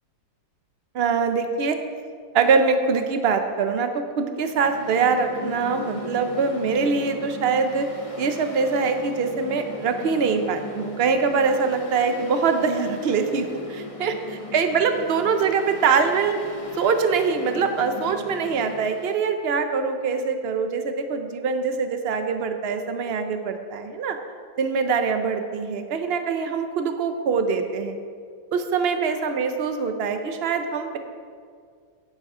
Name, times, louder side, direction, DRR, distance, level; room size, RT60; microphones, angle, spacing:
voice 1, 0.9-1.8 2.3-7.9 8.2-16.4 16.8-24.2 24.6-28.0 28.5-31.0, right 5 dB, 55° right, 7 dB, 0.7 m, -23 dB
Mechanical fan, 4.4-19.3, left 2 dB, 25° left, 0.9 m, -38 dB
9.7 x 9.7 x 3.7 m, 2.1 s
omnidirectional pair, 1.7 m